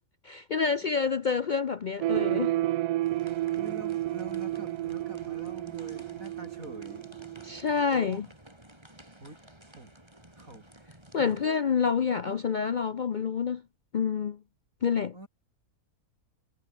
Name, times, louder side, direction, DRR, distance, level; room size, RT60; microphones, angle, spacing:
voice 1, 0.2-2.5 7.4-8.3 11.1-13.6 13.9-14.4 14.8-15.1, left 6 dB, 60° left, 0.4 m, -28 dB
sound 1, 2.0-7.8, right 14 dB, 90° right, 1.2 m, -31 dB
sound 2, 3.0-11.4, right 1 dB, 15° right, 4.5 m, -53 dB
voice 2, 3.6-7.1 7.9-8.2 9.2-9.4 9.7-9.9 10.4-10.7 11.3-11.6 12.3-12.4 15.1-15.3, right 1 dB, 60° right, 7.8 m, -45 dB
omnidirectional pair, 1.6 m